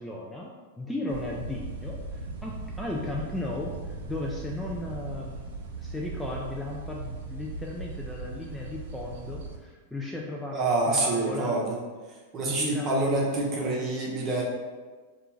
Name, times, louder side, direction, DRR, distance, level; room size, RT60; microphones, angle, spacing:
voice 1, 0.0-5.5 5.8-11.6 12.4-14.0, left 2 dB, 5° left, -3 dB, 0.3 m, -36 dB
sound 1, 1.1-9.6, right 3 dB, 75° right, 0.4 m, -38 dB
voice 2, 10.5-11.7 12.3-14.4, right 2 dB, 35° right, -3 dB, 0.7 m, -26 dB
2.4 x 2.2 x 3.0 m, 1.4 s
hypercardioid pair, 115°, 0 cm